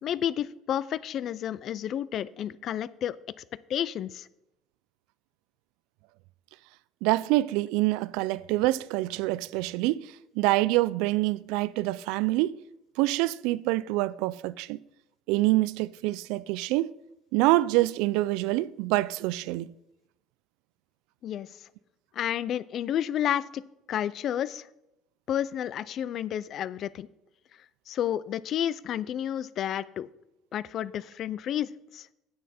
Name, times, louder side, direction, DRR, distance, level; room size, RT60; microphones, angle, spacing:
voice 1, 0.0-3.2 3.7-4.3 21.2-21.5 22.1-23.6 23.9-24.7 25.3-27.1 27.9-30.1 30.5-32.1, left 10 dB, 45° left, 0.4 m, -31 dB
voice 2, 7.0-12.6 13.0-14.8 15.3-16.9 17.3-19.7, right 18 dB, 80° right, 0.3 m, -26 dB
9.9 x 8.6 x 4.3 m
cardioid pair, 135°, 0 cm